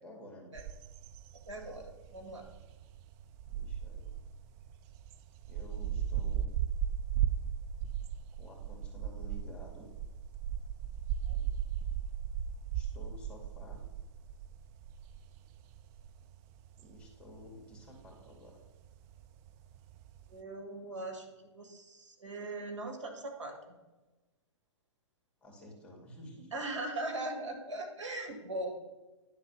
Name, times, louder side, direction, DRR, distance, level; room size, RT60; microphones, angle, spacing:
voice 1, 0.0-0.5 3.5-4.1 5.5-6.6 8.3-9.9 12.7-13.8 16.8-18.6 25.4-26.5, left 1 dB, 5° left, -1 dB, 2.3 m, -51 dB
sound 1, 0.6-20.3, right 9 dB, 30° right, 0.4 m, -37 dB
voice 2, 1.5-2.4 11.3-11.5 20.3-23.8 26.5-28.7, right 2 dB, 75° right, 3 dB, 2.0 m, -40 dB
10.5 x 4.0 x 7.0 m, 1.1 s
hypercardioid pair, 120°, 16 cm